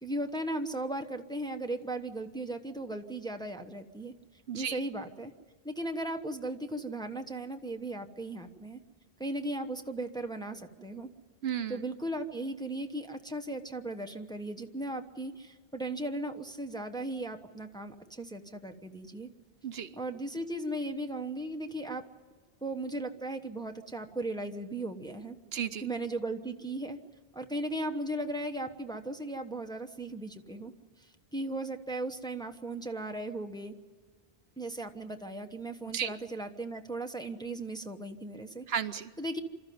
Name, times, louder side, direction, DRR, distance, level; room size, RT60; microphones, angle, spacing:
voice 1, 0.0-4.1 4.5-5.3 5.6-8.8 9.2-11.1 11.7-19.3 19.9-22.0 22.6-25.4 25.8-27.0 27.3-30.7 31.0-31.1 31.3-33.7 34.6-38.6 39.2-39.4, right 1 dB, 5° left, 5 dB, 1.0 m, -37 dB
voice 2, 4.5-4.8 11.4-11.8 19.6-20.0 25.5-25.9 35.9-36.1 38.7-39.1, right 8 dB, 75° right, 11 dB, 1.0 m, -34 dB
25.5 x 13.5 x 9.4 m, 1.5 s
omnidirectional pair, 1.1 m